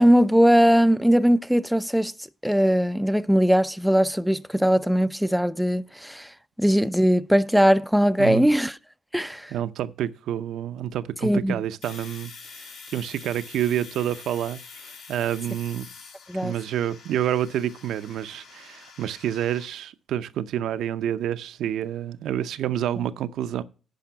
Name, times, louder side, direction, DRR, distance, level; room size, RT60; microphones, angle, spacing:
voice 1, 0.0-2.1 2.4-6.3 6.6-8.7 9.1-9.5 11.2-11.5 16.3-16.5, equal, ahead, 0.4 m, -20 dB
voice 2, 8.2-8.5 9.5-15.9 16.4-23.6, right 11 dB, 80° right, 0.6 m, -28 dB
Domestic sounds home sounds, 11.8-19.7, left 5 dB, 75° left, 5.1 m, -45 dB
10.5 x 5.0 x 5.6 m
cardioid pair, 90°, 0 cm